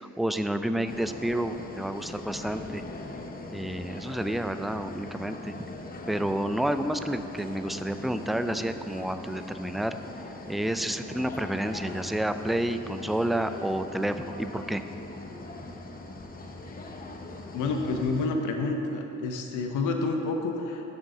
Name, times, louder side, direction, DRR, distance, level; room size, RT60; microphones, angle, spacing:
voice 1, 0.0-2.8 3.5-5.5 6.1-10.0 10.5-14.8, right 1 dB, ahead, 9 dB, 0.3 m, -30 dB
sound 1, 0.9-18.3, left 2 dB, 30° left, 0.9 m, -41 dB
voice 2, 17.5-20.8, left 3 dB, 85° left, 3 dB, 1.0 m, -29 dB
7.0 x 6.4 x 7.3 m, 3.0 s
cardioid pair, 90°, 30 cm